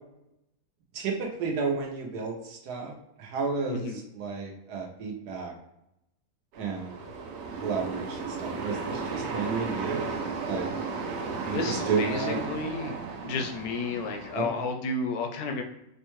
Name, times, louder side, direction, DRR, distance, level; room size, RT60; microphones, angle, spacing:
voice 1, 0.9-2.9 3.2-5.5 6.6-7.0 7.6-10.7 11.4-12.4 14.3-14.7, right 5 dB, 90° right, -1 dB, 1.3 m, -32 dB
voice 2, 3.7-4.0 11.5-12.9 13.2-15.6, left 3 dB, 80° left, 3 dB, 1.2 m, -32 dB
sound 1, 6.5-14.4, right 4 dB, 65° right, 0.7 m, -34 dB
5.3 x 2.1 x 3.0 m, 0.83 s
omnidirectional pair, 1.6 m